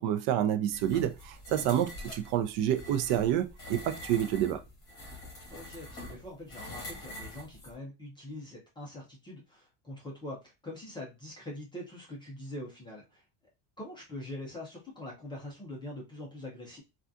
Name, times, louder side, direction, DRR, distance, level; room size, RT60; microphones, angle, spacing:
voice 1, 0.0-4.6, right 11 dB, 60° right, 0.5 m, -28 dB
sound 1, 0.7-7.7, left 1 dB, 30° left, 1.6 m, -45 dB
voice 2, 5.5-13.2 13.8-16.8, left 1 dB, 10° left, 0.3 m, -43 dB
3.5 x 2.4 x 2.5 m
cardioid pair, 170°, 46 cm